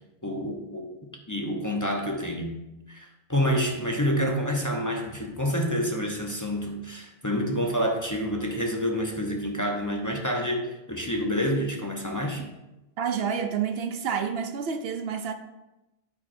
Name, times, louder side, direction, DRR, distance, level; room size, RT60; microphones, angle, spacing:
voice 1, 0.2-0.9 1.3-2.6 2.9-12.5, equal, 20° left, 0.8 m, -28 dB
voice 2, 13.0-15.3, right 7 dB, 70° right, 0.8 m, -29 dB
9.1 x 8.8 x 2.6 m
omnidirectional pair, 1.1 m